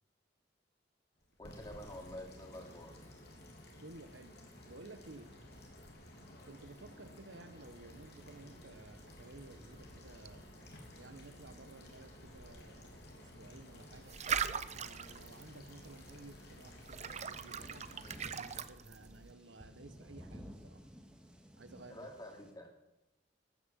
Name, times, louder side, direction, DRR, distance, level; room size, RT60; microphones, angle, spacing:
sound 1, 1.2-18.6, left 1 dB, 60° left, 3.4 m, -54 dB
voice 1, 1.4-3.0 21.9-22.7, left 1 dB, 20° left, 2 dB, 3.0 m, -48 dB
voice 2, 3.8-4.4 4.7-5.3 6.4-10.4 11.0-14.2 14.7-20.9 21.5-22.1, right 2 dB, 90° right, 10 dB, 1.4 m, -55 dB
sound 2, 7.6-19.3, right 7 dB, 40° right, 0.6 m, -44 dB
sound 3, 14.8-22.5, equal, 5° right, 1.9 m, -56 dB
14.0 x 10.5 x 7.6 m, 0.96 s
head